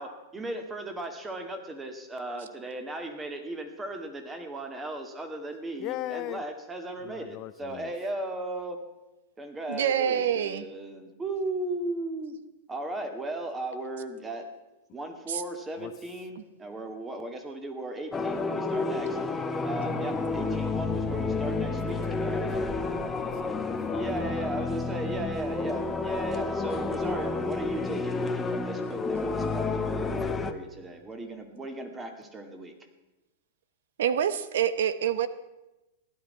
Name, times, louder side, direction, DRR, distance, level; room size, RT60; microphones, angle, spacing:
voice 1, 0.0-8.8 9.4-12.4 12.7-14.5 14.9-19.2 19.6-22.7 23.9-32.7, right 2 dB, 15° right, 6 dB, 2.0 m, -36 dB
voice 2, 5.8-6.4 7.0-7.9 15.8-15.9 21.9-24.7, left 15 dB, 40° left, 14 dB, 0.5 m, -39 dB
voice 3, 9.7-10.6 15.3-15.4 16.4-16.5 34.0-35.3, right 9 dB, 75° right, 15 dB, 0.9 m, -26 dB
sound 1, 18.1-30.5, left 3 dB, 10° left, 1.0 m, -30 dB
16.0 x 11.5 x 5.7 m, 1.0 s
hypercardioid pair, 135°, 0 cm